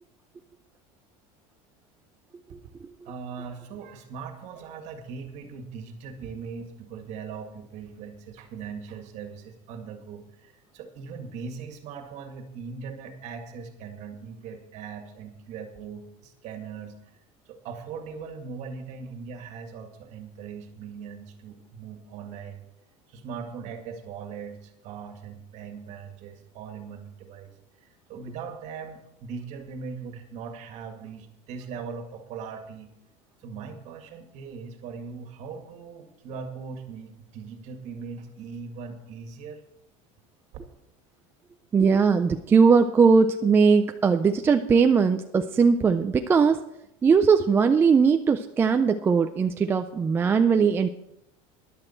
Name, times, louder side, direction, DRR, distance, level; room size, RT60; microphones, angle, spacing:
voice 1, 3.0-17.2 17.5-22.6 23.1-27.5 27.8-32.9 33.4-39.6 40.5-40.6, right 5 dB, 45° right, 5 dB, 2.0 m, -40 dB
voice 2, 41.7-46.6 47.0-50.9, right 5 dB, 15° right, 6 dB, 0.3 m, -20 dB
13.5 x 11.0 x 4.4 m, 0.83 s
cardioid pair, 165°, 17 cm